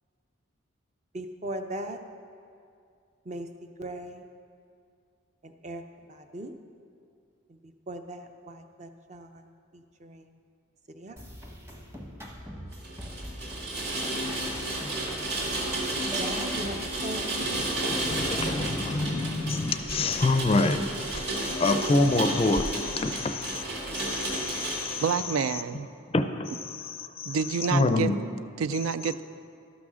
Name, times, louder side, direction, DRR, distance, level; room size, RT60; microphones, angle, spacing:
voice 1, 1.1-2.0 3.3-3.5 3.8-4.2 5.6-5.8 6.3-6.5 7.9-9.3 10.0-10.1 11.0-11.1 16.2-16.8 17.0-18.0, right 1 dB, 35° right, 0.5 m, -38 dB
sound 1, 11.2-19.5, equal, 10° right, 0.9 m, -43 dB
Rain, 12.8-25.1, right 2 dB, 55° right, 2.2 m, -32 dB
voice 2, 17.5-23.7 24.0-25.0 26.1-27.4 27.7-28.2, left 2 dB, 30° left, 0.4 m, -27 dB
voice 3, 25.0-25.9 27.3-28.1 28.6-29.2, right 6 dB, 90° right, 0.3 m, -28 dB
12.5 x 6.1 x 6.2 m
head